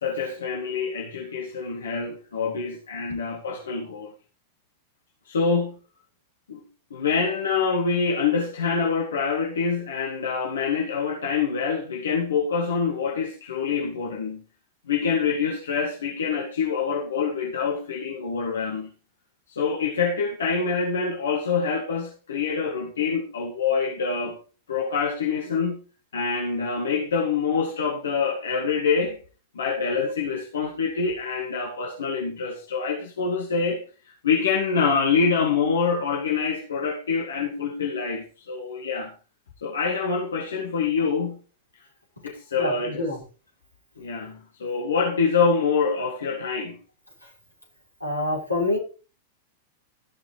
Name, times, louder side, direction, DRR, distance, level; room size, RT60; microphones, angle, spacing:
voice 1, 0.0-4.1 5.3-5.8 6.5-6.6 6.9-14.4 14.9-18.9 19.5-24.4 24.7-25.8 26.1-29.2 29.5-33.8 34.2-39.1 39.6-41.4 42.2-43.1 44.0-46.8, left 5 dB, 65° left, 2.3 m, -25 dB
voice 2, 42.6-43.2 48.0-48.8, left 2 dB, 85° left, 5.3 m, -26 dB
14.5 x 6.3 x 4.9 m
figure-of-eight pair, 95°, 0 cm